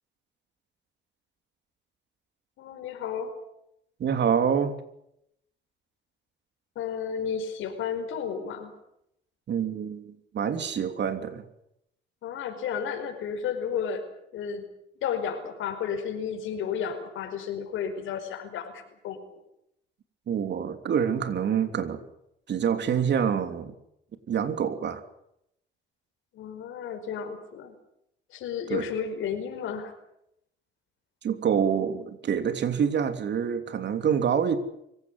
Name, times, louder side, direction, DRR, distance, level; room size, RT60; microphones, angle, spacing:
voice 1, 2.6-3.3 6.7-8.7 12.2-14.1 14.3-14.6 15.0-19.2 26.3-27.7 28.3-29.9, left 7 dB, 85° left, 5 dB, 4.9 m, -32 dB
voice 2, 4.0-4.8 9.5-11.4 20.3-22.0 22.5-23.7 24.3-25.0 28.7-28.9 31.2-34.6, right 7 dB, 60° right, 8 dB, 3.2 m, -26 dB
24.5 x 17.0 x 9.8 m, 0.78 s
cardioid pair, 90°, 20 cm